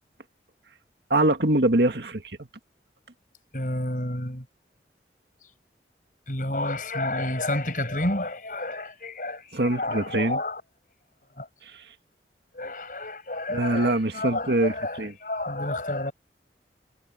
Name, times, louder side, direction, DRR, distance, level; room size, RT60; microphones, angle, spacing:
voice 1, 1.1-2.5 9.5-10.4 11.6-11.8 13.5-15.1, right 1 dB, 70° right, 2.0 m, -24 dB
voice 2, 3.5-4.5 6.3-10.6 11.4-11.5 12.5-16.1, left 1 dB, 50° left, 6.0 m, -30 dB
head